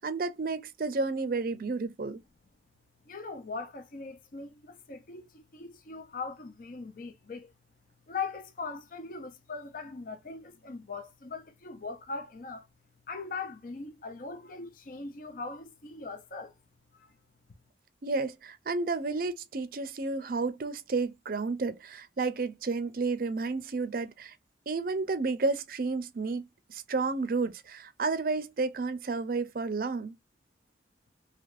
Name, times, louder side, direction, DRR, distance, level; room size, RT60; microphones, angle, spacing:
voice 1, 0.0-2.2 18.0-24.4 24.7-30.2, right 3 dB, 50° right, 0.5 m, -31 dB
voice 2, 3.1-7.5 8.1-12.7 13.1-16.5 16.9-17.1, left 4 dB, 50° left, 0.5 m, -40 dB
3.3 x 2.8 x 2.4 m
head